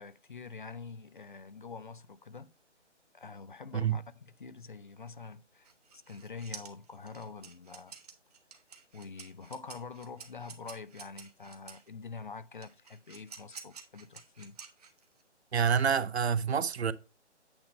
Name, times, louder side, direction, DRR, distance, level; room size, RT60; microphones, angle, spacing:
voice 1, 0.0-2.5 3.1-5.7 6.1-7.9 8.9-14.6, left 4 dB, 45° left, 0.4 m, -46 dB
sound 1, 5.6-11.9 12.6-15.2, right 6 dB, 35° right, 1.0 m, -50 dB
voice 2, 15.5-16.9, right 7 dB, 60° right, 0.7 m, -27 dB
8.7 x 3.6 x 5.3 m
figure-of-eight pair, 155°, 36 cm